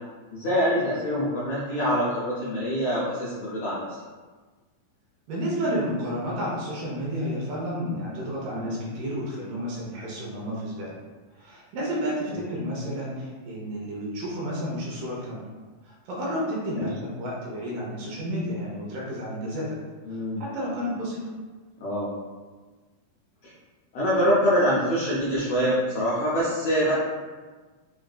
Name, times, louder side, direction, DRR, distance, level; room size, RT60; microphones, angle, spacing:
voice 1, 0.3-4.0 8.5-8.8 12.3-12.4 16.8-17.0 20.0-20.4 21.8-22.1 23.4-23.5 23.9-26.9, equal, 90° left, -8 dB, 1.5 m, -25 dB
voice 2, 5.3-10.9 11.4-15.4 15.8-19.8 20.1-21.2, equal, 75° right, -4 dB, 2.3 m, -31 dB
5.7 x 2.5 x 2.3 m, 1.4 s
omnidirectional pair, 4.1 m